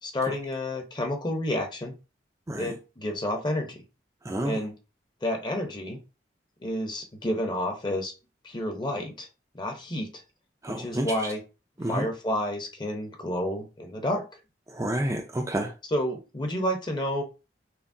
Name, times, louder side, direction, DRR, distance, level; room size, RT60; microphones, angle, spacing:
voice 1, 0.0-1.9 2.6-3.8 4.4-4.7 5.2-6.0 6.6-8.1 8.4-9.3 9.5-10.1 10.7-11.4 11.9-14.2 15.9-17.2, left 1 dB, 25° left, 3 dB, 0.8 m, -30 dB
voice 2, 4.2-4.6 10.6-11.1 11.8-12.1 14.7-15.7, right 1 dB, 15° right, 2 dB, 0.4 m, -29 dB
5.7 x 2.2 x 2.6 m, 0.31 s
head